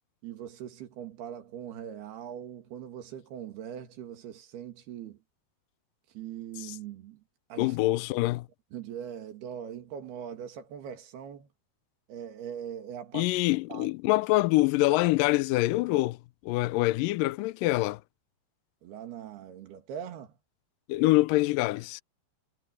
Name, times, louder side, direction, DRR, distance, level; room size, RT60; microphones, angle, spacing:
voice 1, 0.2-5.2 6.1-7.2 7.5-7.8 8.7-11.5 12.1-13.3 13.7-13.9 18.8-20.3, right 9 dB, 80° right, 4.2 m, -41 dB
voice 2, 7.6-8.5 13.1-16.2 16.4-18.0 20.9-22.0, left 19 dB, 90° left, 2.0 m, -25 dB
omnidirectional pair, 4.5 m